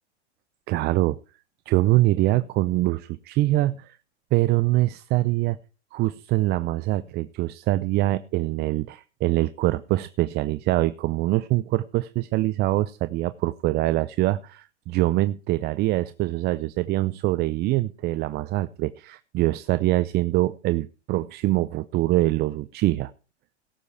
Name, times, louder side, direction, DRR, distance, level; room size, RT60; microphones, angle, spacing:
voice 1, 0.7-1.2 1.7-4.0 4.3-5.6 5.9-23.1, right 17 dB, 30° right, 0.5 m, -24 dB
17.5 x 8.4 x 4.9 m
hypercardioid pair, 110°, 35 cm